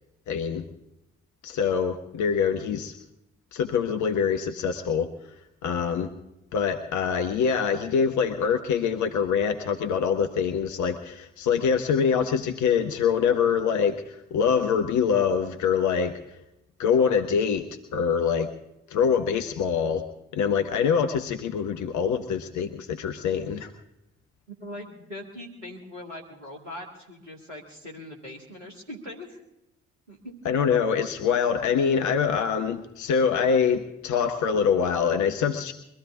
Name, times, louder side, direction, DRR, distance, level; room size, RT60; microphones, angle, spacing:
voice 1, 0.3-0.7 1.4-2.9 3.5-5.1 5.6-6.1 6.5-16.4 16.8-17.7 17.9-18.5 18.9-20.0 20.3-23.7 30.4-35.7, left 6 dB, 55° left, 6 dB, 1.1 m, -24 dB
voice 2, 24.6-29.4 30.1-30.3, left 1 dB, 90° right, -1 dB, 1.9 m, -41 dB
23.0 x 14.0 x 3.7 m, 0.87 s
figure-of-eight pair, 45°, 36 cm